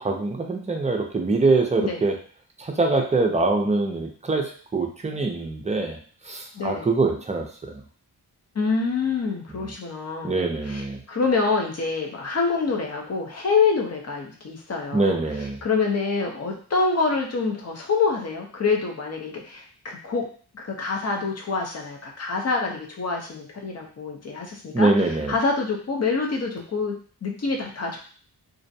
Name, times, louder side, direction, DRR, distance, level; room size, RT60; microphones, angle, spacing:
voice 1, 0.0-2.2 2.6-6.0 6.3-7.8 9.6-9.7 10.2-11.0 14.9-15.6 24.7-25.3, right 3 dB, 20° right, 2 dB, 0.5 m, -24 dB
voice 2, 6.5-6.9 8.5-20.3 20.5-27.0 27.2-28.0, left 4 dB, 40° left, 0 dB, 0.7 m, -26 dB
2.5 x 2.1 x 2.6 m, 0.43 s
cardioid pair, 80°, 40 cm